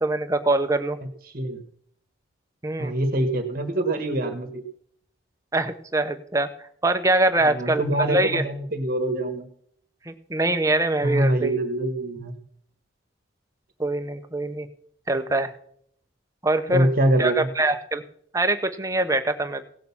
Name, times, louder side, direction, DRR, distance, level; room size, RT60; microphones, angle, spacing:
voice 1, 0.0-1.0 2.6-2.9 5.5-6.5 6.8-8.4 10.1-11.5 13.8-14.7 15.1-15.5 16.4-16.9 17.2-18.0 18.3-19.6, right 2 dB, 15° right, 8 dB, 0.8 m, -23 dB
voice 2, 2.8-4.6 7.4-9.5 11.0-12.3 16.7-17.5, right 1 dB, 50° right, 6 dB, 1.3 m, -24 dB
17.0 x 6.6 x 7.1 m, 0.66 s
head